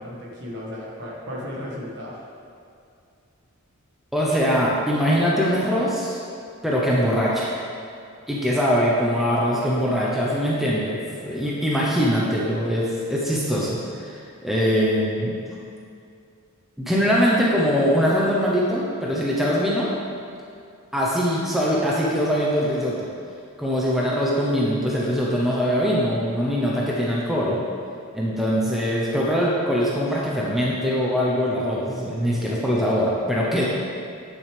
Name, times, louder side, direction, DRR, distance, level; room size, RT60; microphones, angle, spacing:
voice 1, 0.0-2.2, left 1 dB, 55° right, -4 dB, 1.6 m, -34 dB
voice 2, 4.1-6.2 6.6-7.5 8.3-15.3 16.8-19.9 20.9-23.0 23.6-27.6 28.1-33.7, equal, ahead, -6 dB, 0.8 m, -22 dB
9.2 x 6.7 x 3.4 m, 2.5 s
head